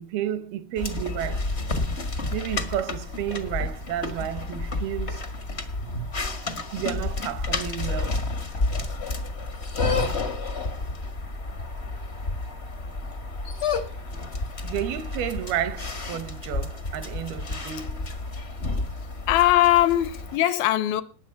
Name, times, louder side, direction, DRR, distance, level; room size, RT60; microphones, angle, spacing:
voice 1, 0.0-1.5 2.3-5.3 6.4-8.2 14.6-18.1, right 11 dB, 80° right, 3.0 m, -31 dB
sound 1, 0.8-20.4, left 3 dB, 55° left, 0.7 m, -30 dB
voice 2, 19.3-21.0, left 14 dB, 75° left, 2.6 m, -20 dB
19.5 x 8.2 x 5.9 m
omnidirectional pair, 4.4 m